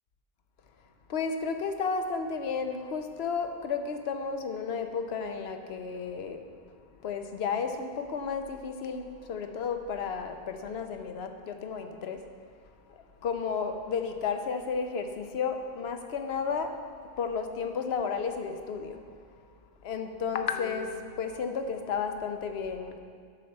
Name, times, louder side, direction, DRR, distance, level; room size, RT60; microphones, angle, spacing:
voice 1, 1.1-6.4 7.0-12.2 12.9-16.7 17.2-19.0 19.8-23.0, left 5 dB, 85° left, 6 dB, 1.0 m, -32 dB
10.5 x 4.3 x 6.6 m, 2.1 s
omnidirectional pair, 1.0 m